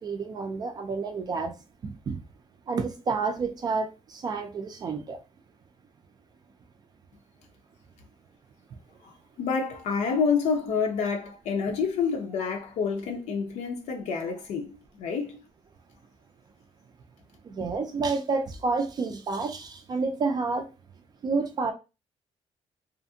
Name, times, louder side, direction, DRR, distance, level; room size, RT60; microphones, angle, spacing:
voice 1, 0.0-1.5 1.8-2.2 2.7-5.2 17.4-20.7 21.2-21.7, right 4 dB, 35° right, 0.3 m, -29 dB
voice 2, 9.0-15.4, left 5 dB, 80° left, 0.6 m, -28 dB
2.5 x 2.5 x 2.6 m
cardioid pair, 165°, 12 cm